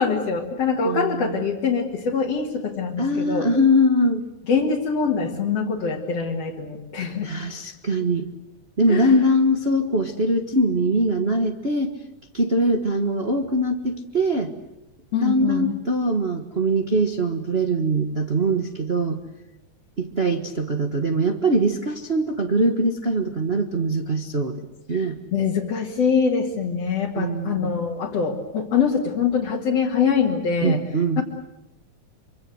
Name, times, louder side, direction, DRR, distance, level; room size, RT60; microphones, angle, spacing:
voice 1, 0.0-3.5 4.5-7.3 8.9-9.2 15.1-15.7 24.9-25.0 25.3-30.8 31.2-31.3, left 6 dB, 55° left, -2 dB, 3.0 m, -24 dB
voice 2, 0.8-1.3 3.0-4.2 7.2-8.3 8.8-11.9 12.3-14.5 15.2-19.2 20.0-25.2 27.2-27.7 30.6-31.2, right 1 dB, 40° right, 4 dB, 0.9 m, -22 dB
26.0 x 25.0 x 7.9 m, 0.96 s
omnidirectional pair, 3.5 m